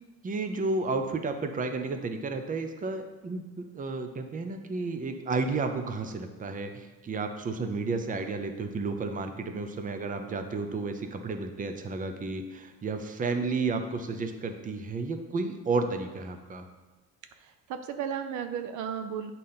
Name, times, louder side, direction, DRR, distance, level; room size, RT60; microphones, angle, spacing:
voice 1, 0.2-16.6, right 3 dB, 25° right, 7 dB, 0.7 m, -32 dB
voice 2, 17.4-19.3, right 8 dB, 70° right, 8 dB, 0.6 m, -34 dB
8.5 x 4.1 x 5.6 m, 1.2 s
cardioid pair, 125°, 31 cm